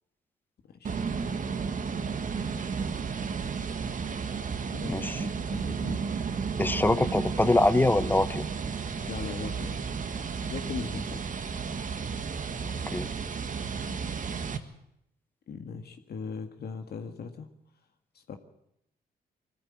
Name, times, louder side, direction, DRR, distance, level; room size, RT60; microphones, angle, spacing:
voice 1, 0.7-1.4 4.7-6.0 9.1-9.9 10.4-11.2 15.5-17.5 18.2-18.4, left 5 dB, 60° left, 6 dB, 1.8 m, -39 dB
sound 1, 0.8-14.6, right 5 dB, 45° right, 1.6 m, -33 dB
voice 2, 4.9-5.2 6.6-8.5 12.5-13.1, left 2 dB, 10° left, 14 dB, 1.0 m, -24 dB
21.0 x 13.5 x 9.0 m, 0.79 s
cardioid pair, 75°, 18 cm